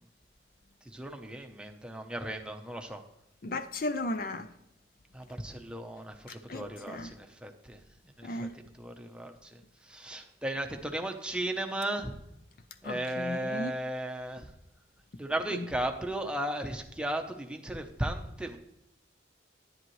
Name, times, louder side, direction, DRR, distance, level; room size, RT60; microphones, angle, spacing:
voice 1, 0.8-3.0 5.1-7.8 8.2-8.5 8.7-12.1 12.8-14.5 15.2-18.6, right 1 dB, 5° right, 0.8 m, -36 dB
voice 2, 3.4-4.5 6.3-7.1 8.2-8.6 12.8-13.7 15.5-15.6, left 2 dB, 50° left, 0.5 m, -35 dB
10.5 x 10.0 x 3.1 m
head